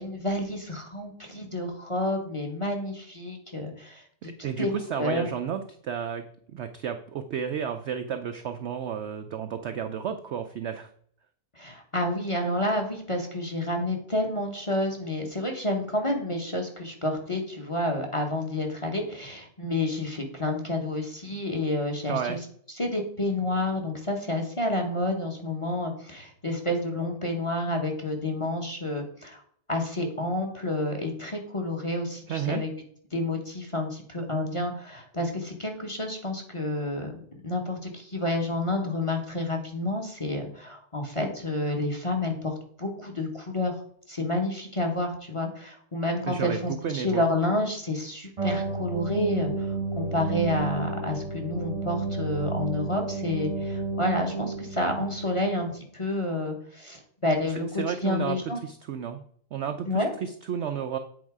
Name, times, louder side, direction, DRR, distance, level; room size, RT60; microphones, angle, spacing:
voice 1, 0.0-4.0 4.6-4.7 5.0-5.3 11.6-22.4 22.7-29.4 29.7-32.7 33.1-43.8 44.1-58.6 59.8-60.1, left 1 dB, 25° left, 3 dB, 0.8 m, -29 dB
voice 2, 4.2-10.9 22.1-22.4 32.3-32.6 46.2-47.2 57.8-58.4 58.6-59.2 59.5-61.0, right 8 dB, 80° right, 8 dB, 0.6 m, -32 dB
sound 1, 48.4-55.4, right 3 dB, 30° right, 0.7 m, -31 dB
8.0 x 4.3 x 4.7 m, 0.62 s
omnidirectional pair, 1.7 m